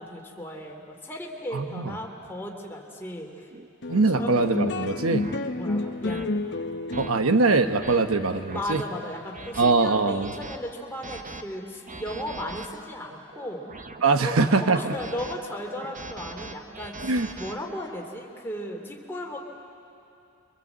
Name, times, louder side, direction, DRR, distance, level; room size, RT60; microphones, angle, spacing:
voice 1, 0.0-3.5 4.2-4.3 5.6-6.4 8.5-13.6 14.2-19.4, equal, 10° left, -1 dB, 3.0 m, -36 dB
voice 2, 1.5-1.9 3.9-5.3 7.0-8.8 9.6-10.3 14.0-14.9 17.0-17.3, right 3 dB, 75° right, 7 dB, 1.1 m, -22 dB
sound 1, 3.5-3.7 4.3-4.5 5.2-5.4 6.1-6.3 6.9-7.1 7.6-8.0 8.5-8.8 9.3-9.7 10.2-10.6 11.0-11.4 11.9-12.7 13.3-14.0 14.7-15.3 15.8-17.5, right 3 dB, 35° right, 1.0 m, -41 dB
sound 2, 3.8-10.5, left 2 dB, 55° left, 1.0 m, -32 dB
28.5 x 24.5 x 8.1 m, 2.7 s
head